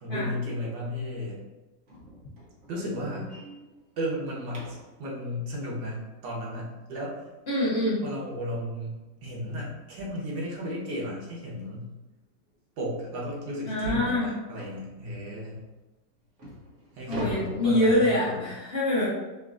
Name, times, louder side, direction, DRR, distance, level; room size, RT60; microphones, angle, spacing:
voice 1, 0.0-1.4 2.7-3.3 4.0-7.2 8.0-11.9 12.8-15.6 17.0-18.5, equal, 85° right, -5 dB, 1.9 m, -34 dB
sound 1, 1.9-5.0 7.8-7.9 8.4-8.6 8.9-9.0 9.5-9.6 10.7-10.8 11.2-11.4 12.0-12.1 12.5-12.6 13.1-13.2 14.6-14.9 15.6-15.7 16.2-18.5, equal, 50° right, 1.0 m, -43 dB
voice 2, 7.5-8.0 13.7-14.3 17.1-19.1, left 1 dB, 45° left, -8 dB, 0.9 m, -25 dB
5.6 x 2.6 x 2.4 m, 1.1 s
omnidirectional pair, 2.0 m